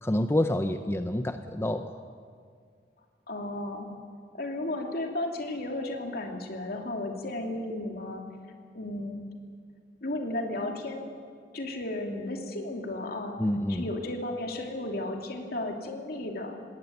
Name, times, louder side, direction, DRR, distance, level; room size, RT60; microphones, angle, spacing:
voice 1, 0.0-2.0 13.4-13.9, left 1 dB, 15° left, 8 dB, 0.6 m, -28 dB
voice 2, 3.3-3.9 4.3-8.2 8.7-9.2 10.0-11.1 11.5-13.4 13.7-16.6, left 1 dB, 60° left, 3 dB, 2.8 m, -34 dB
19.0 x 17.5 x 9.3 m, 2.1 s
head